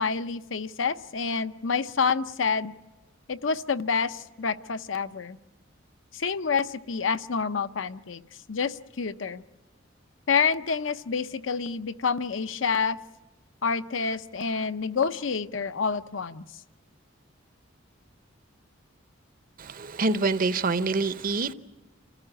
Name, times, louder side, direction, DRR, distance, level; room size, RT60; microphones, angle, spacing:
voice 1, 0.0-2.7 3.3-5.4 6.1-8.2 8.5-9.4 10.3-13.0 13.6-16.4, left 5 dB, 70° left, 0.7 m, -28 dB
voice 2, 19.6-21.5, right 3 dB, 45° right, 0.8 m, -26 dB
28.0 x 15.0 x 10.0 m
head